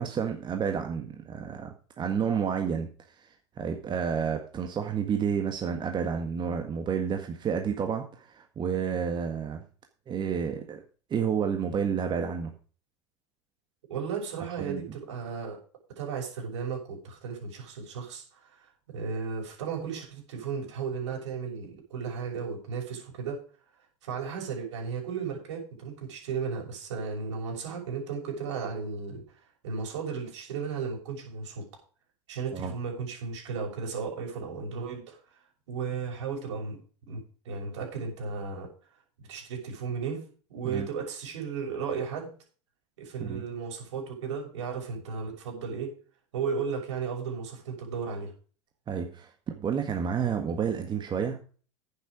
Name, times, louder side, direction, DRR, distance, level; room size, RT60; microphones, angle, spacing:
voice 1, 0.0-2.9 3.2-3.3 3.6-9.6 10.1-10.8 11.1-12.5 14.6-14.8 32.5-32.7 40.6-40.9 43.2-43.4 48.9-51.4, right 7 dB, 30° right, 5 dB, 1.7 m, -30 dB
voice 2, 13.9-15.6 16.0-23.4 24.0-29.2 29.6-31.6 32.3-35.2 35.7-36.8 37.1-38.7 39.3-40.2 40.5-42.3 43.0-45.9 46.3-48.3, right 5 dB, 70° right, 0 dB, 6.3 m, -35 dB
10.5 x 9.1 x 5.0 m, 0.40 s
hypercardioid pair, 90°, 16 cm